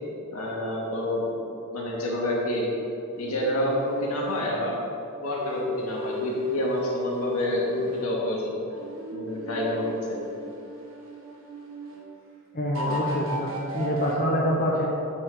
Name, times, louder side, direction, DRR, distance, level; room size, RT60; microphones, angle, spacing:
voice 1, 0.3-2.7 3.2-4.8 5.2-8.5 9.1-9.9, left 1 dB, 75° left, -4 dB, 2.4 m, -28 dB
sound 1, 3.1-4.5 5.3-8.2 8.7-12.1 12.7-14.2, left 1 dB, 65° right, 1.8 m, -34 dB
voice 2, 12.5-14.9, equal, 40° left, -4 dB, 1.0 m, -26 dB
9.9 x 4.9 x 7.2 m, 2.6 s
head